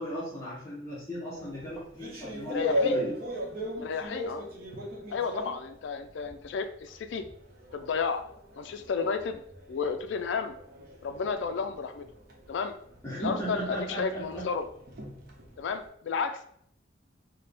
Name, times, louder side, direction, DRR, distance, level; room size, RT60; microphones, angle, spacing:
voice 1, 0.0-3.1 13.0-14.5, equal, 15° left, -8 dB, 0.8 m, -36 dB
sound 1, 1.3-6.5 6.9-15.8, equal, 50° right, 0.8 m, -37 dB
voice 2, 2.5-3.0 3.8-4.5 5.1-7.2 7.7-8.2 8.6-9.4 9.7-10.5 11.0-12.1 12.5-12.7 13.2-14.7 15.6-16.5, left 5 dB, 65° left, 7 dB, 0.3 m, -32 dB
4.1 x 2.1 x 3.3 m, 0.68 s
head